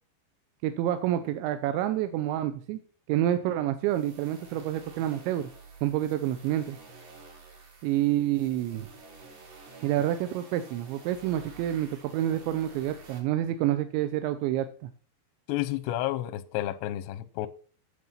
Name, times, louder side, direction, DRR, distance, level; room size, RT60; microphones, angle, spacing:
voice 1, 0.6-2.8 3.1-5.5 5.8-6.8 7.8-8.9 9.8-14.9, right 12 dB, 85° right, 9 dB, 2.9 m, -28 dB
sound 1, 3.8-13.2, right 3 dB, 60° right, 5.3 m, -50 dB
voice 2, 15.5-17.5, left 14 dB, 80° left, 11 dB, 2.6 m, -31 dB
9.5 x 7.7 x 5.6 m, 0.42 s
omnidirectional pair, 5.4 m